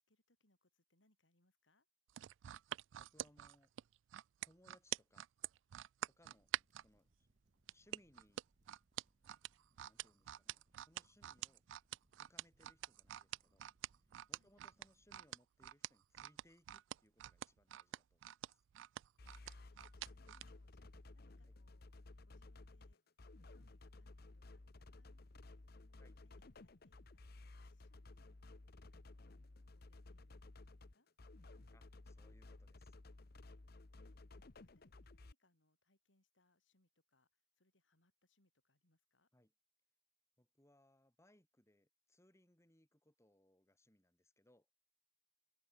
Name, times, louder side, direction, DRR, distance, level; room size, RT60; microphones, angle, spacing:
voice 1, 0.0-1.9 11.3-11.6 14.3-14.5 19.4-19.8 20.1-21.9 22.2-28.3 28.9-29.3 29.7-31.1 33.9-39.3, left 1 dB, 85° left, 6.9 m, -79 dB
sound 1, 2.1-6.9 7.7-20.5 20.9-21.1, right 12 dB, 80° right, 0.3 m, -46 dB
voice 2, 3.0-3.7 4.4-5.3 6.1-7.1 7.7-8.4 9.9-11.6 12.2-13.6 14.3-18.6 21.5-21.6 26.0-26.2 31.7-32.9 39.3-39.5 40.4-44.7, left 1 dB, 15° left, 4.8 m, -71 dB
Crackle, 6.3-15.4, right 1 dB, 40° right, 1.4 m, -78 dB
sound 2, 19.2-35.3, left 2 dB, 55° left, 1.0 m, -57 dB
open air
head